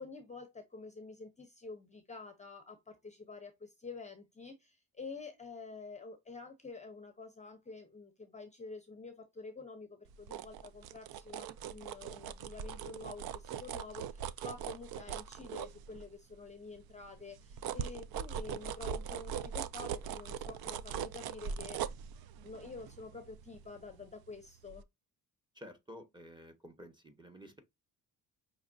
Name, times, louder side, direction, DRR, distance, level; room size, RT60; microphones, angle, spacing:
voice 1, 0.0-21.8 22.4-24.8, left 3 dB, 20° left, 0.7 m, -48 dB
sound 1, 10.1-16.3 16.8-24.3 24.7-24.8, right 8 dB, 75° right, 0.6 m, -41 dB
voice 2, 25.6-27.6, equal, 10° right, 1.0 m, -52 dB
5.6 x 3.0 x 2.5 m
cardioid pair, 145°, 37 cm